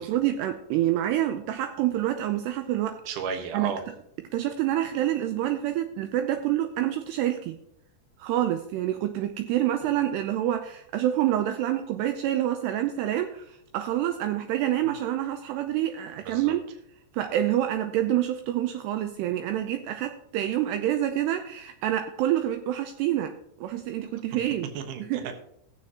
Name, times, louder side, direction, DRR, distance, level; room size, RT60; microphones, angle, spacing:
voice 1, 0.0-3.0 3.5-3.7 4.3-7.6 8.2-16.6 17.1-24.7 25.0-25.3, right 12 dB, 90° right, 7 dB, 2.3 m, -27 dB
voice 2, 3.1-3.8 16.3-16.5 24.7-25.3, right 6 dB, 65° right, 6 dB, 2.1 m, -34 dB
20.0 x 7.5 x 2.9 m, 0.74 s
omnidirectional pair, 5.6 m